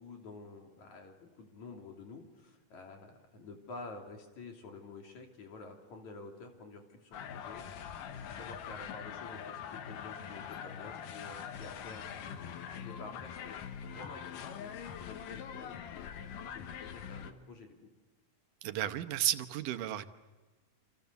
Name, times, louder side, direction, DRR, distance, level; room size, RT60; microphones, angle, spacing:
voice 1, 0.0-7.7 8.2-12.4 12.8-13.6 13.9-16.1 16.5-17.8, left 3 dB, 60° left, 2 dB, 4.4 m, -50 dB
Fires - Toros, 7.1-17.3, left 8 dB, 85° left, 2.9 m, -43 dB
voice 2, 18.6-20.1, right 12 dB, 85° right, 9 dB, 2.6 m, -33 dB
29.0 x 27.0 x 6.9 m, 1.2 s
omnidirectional pair, 3.7 m